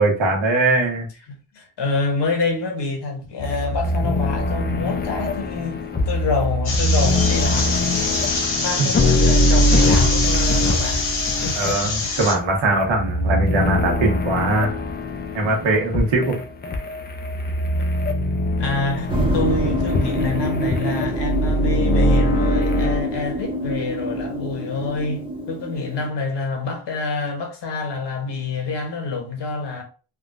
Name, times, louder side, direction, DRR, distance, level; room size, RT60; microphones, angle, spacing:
voice 1, 0.0-1.1 8.8-8.9 11.6-14.7 15.3-16.4, right 2 dB, 70° right, 1.2 m, -20 dB
voice 2, 1.3-8.1 8.6-11.0 11.4-11.8 12.0-12.1 18.6-29.8, left 3 dB, 60° left, 1.0 m, -27 dB
sound 1, 3.4-23.0, left 1 dB, 25° left, 0.3 m, -22 dB
sound 2, 6.6-12.3, left 3 dB, 80° left, 1.5 m, -24 dB
sound 3, 19.1-26.1, equal, 10° right, 0.7 m, -26 dB
3.5 x 2.4 x 2.5 m
cardioid pair, 120°, 48 cm